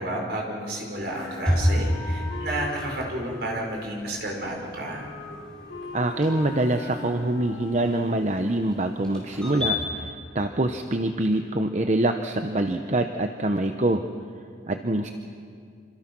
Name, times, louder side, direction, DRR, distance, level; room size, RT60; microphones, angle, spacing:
voice 1, 0.0-5.1, right 1 dB, 60° right, 0 dB, 5.3 m, -31 dB
Wind instrument woodwind instrument, 1.0-8.0, left 3 dB, 80° left, 4.3 m, -40 dB
sound 1, 1.0-9.7, equal, 5° left, 5.5 m, -32 dB
voice 2, 5.9-14.1 14.7-15.1, right 1 dB, 40° right, 6 dB, 0.8 m, -25 dB
26.5 x 26.0 x 6.1 m, 2.3 s
head